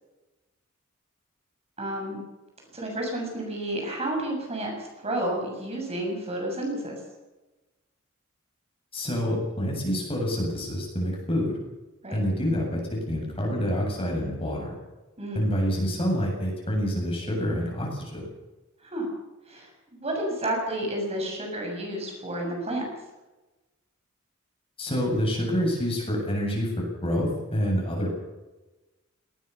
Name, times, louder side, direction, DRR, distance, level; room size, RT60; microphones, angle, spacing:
voice 1, 1.8-2.2 2.7-7.0 12.0-12.2 15.2-15.5 18.8-19.1 19.5-22.8, right 1 dB, 30° right, 0 dB, 7.3 m, -31 dB
voice 2, 8.9-11.5 12.1-12.8 13.1-14.8 15.4-18.3 24.8-26.7 27.0-28.1, equal, 25° left, 0 dB, 7.7 m, -27 dB
19.5 x 18.5 x 7.1 m, 1.1 s
head